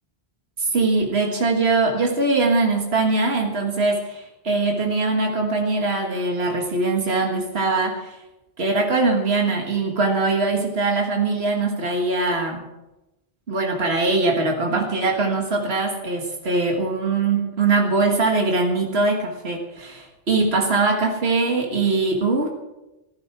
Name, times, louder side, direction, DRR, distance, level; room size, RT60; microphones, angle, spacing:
voice 1, 0.6-8.2 8.6-12.6 13.5-22.5, right 3 dB, 85° right, 1 dB, 2.0 m, -22 dB
15.5 x 13.5 x 6.0 m, 1.0 s
omnidirectional pair, 1.0 m